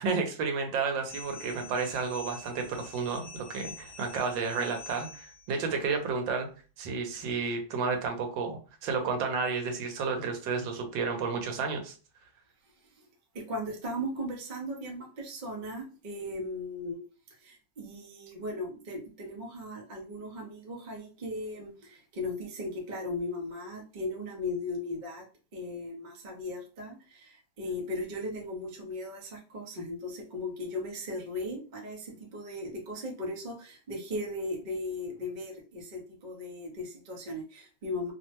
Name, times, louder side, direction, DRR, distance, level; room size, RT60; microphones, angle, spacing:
voice 1, 0.0-6.5 6.8-11.9, right 4 dB, 80° right, 5 dB, 1.4 m, -31 dB
sound 1, 1.1-5.6, left 3 dB, 55° left, 1.4 m, -47 dB
voice 2, 13.3-17.0 17.4-25.2 25.5-38.1, left 1 dB, 50° right, -1 dB, 0.5 m, -37 dB
3.3 x 2.1 x 2.8 m, 0.37 s
omnidirectional pair, 2.1 m